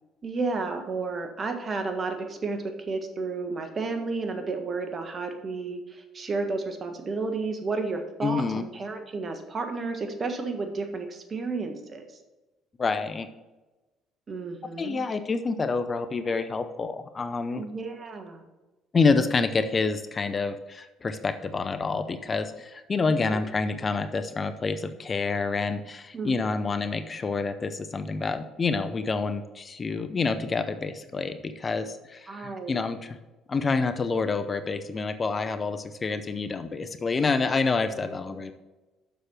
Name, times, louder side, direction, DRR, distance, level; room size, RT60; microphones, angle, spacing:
voice 1, 0.2-12.1 14.3-15.0 17.6-18.4 23.3-23.4 26.1-26.6 32.3-32.8 38.0-38.5, right 3 dB, 40° right, 6 dB, 1.5 m, -32 dB
voice 2, 8.2-8.6 12.8-13.3 14.8-17.6 18.9-33.2 33.5-38.5, left 4 dB, 35° left, 10 dB, 0.7 m, -28 dB
7.0 x 6.4 x 5.9 m, 1.1 s
hypercardioid pair, 55°, 0 cm